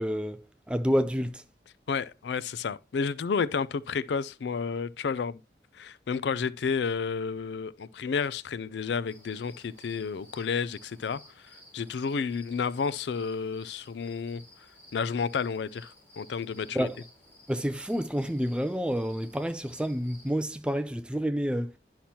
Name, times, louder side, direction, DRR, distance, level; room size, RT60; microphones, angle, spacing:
voice 1, 0.0-1.4 16.7-17.0 17.5-21.7, equal, 5° right, 0.4 m, -29 dB
voice 2, 1.9-5.4 5.7-14.4 14.9-16.9, left 5 dB, 80° left, 0.4 m, -31 dB
sound 1, 9.1-20.3, left 1 dB, 10° left, 3.1 m, -56 dB
10.0 x 5.8 x 2.8 m
head